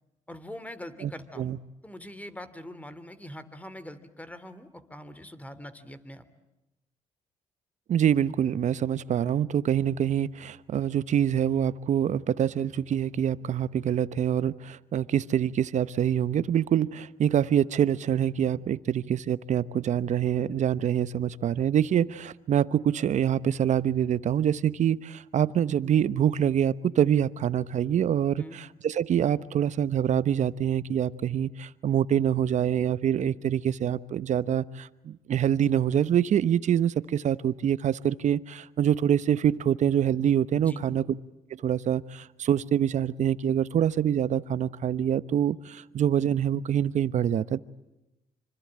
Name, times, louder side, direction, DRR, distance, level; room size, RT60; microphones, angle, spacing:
voice 1, 0.3-1.5 1.8-6.2 28.4-28.6 40.6-40.8, left 1 dB, 10° left, 13 dB, 2.9 m, -43 dB
voice 2, 7.9-41.0 41.6-47.6, right 9 dB, 55° right, 17 dB, 1.0 m, -25 dB
26.0 x 25.5 x 8.8 m, 0.95 s
supercardioid pair, 75°, 14 cm